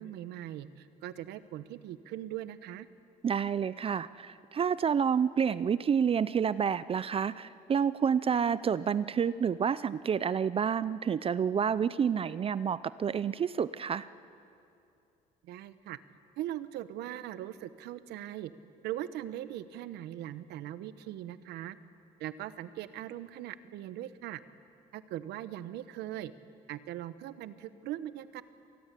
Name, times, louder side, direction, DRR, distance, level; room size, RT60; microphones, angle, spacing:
voice 1, 0.0-2.9 15.4-16.0 16.4-18.5 18.8-21.8 22.2-24.4 24.9-26.3 26.7-28.4, right 13 dB, 80° right, 14 dB, 1.0 m, -40 dB
voice 2, 3.2-14.1, right 7 dB, 35° right, 17 dB, 0.5 m, -29 dB
26.0 x 19.5 x 8.3 m, 2.6 s
cardioid pair, 110°, 17 cm